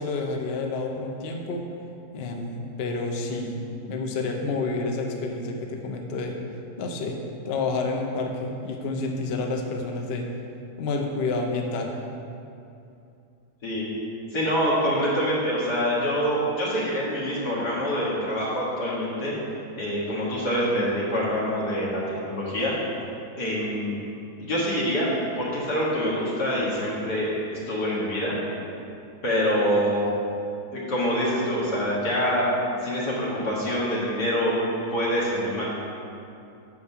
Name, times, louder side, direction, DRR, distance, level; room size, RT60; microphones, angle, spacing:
voice 1, 0.0-1.7 2.1-3.6 3.9-6.4 6.8-7.2 7.5-10.3 10.8-11.9, left 3 dB, 50° left, 2 dB, 0.8 m, -29 dB
voice 2, 14.3-19.3 19.8-22.7 23.4-24.0 24.4-28.4 29.2-30.1 30.7-32.5 32.8-34.5 34.9-35.6, equal, 85° left, -7 dB, 2.5 m, -25 dB
6.6 x 5.0 x 6.7 m, 2.6 s
omnidirectional pair, 1.7 m